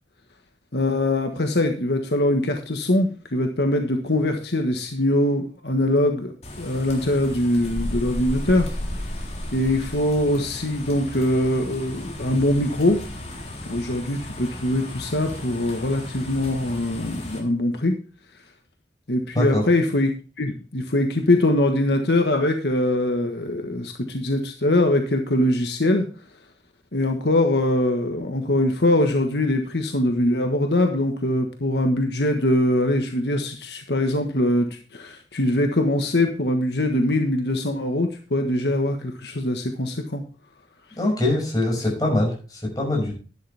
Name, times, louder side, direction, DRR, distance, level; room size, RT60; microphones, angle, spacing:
voice 1, 0.7-6.3 6.6-8.7 9.5-13.0 13.6-18.0 19.1-20.1 20.4-26.1 26.9-40.2, left 1 dB, 70° left, 4 dB, 1.4 m, -22 dB
sound 1, 6.4-17.4, left 1 dB, 35° left, 3.7 m, -34 dB
voice 2, 41.0-43.1, left 1 dB, 20° left, -2 dB, 6.1 m, -23 dB
11.5 x 11.0 x 3.4 m, 0.37 s
head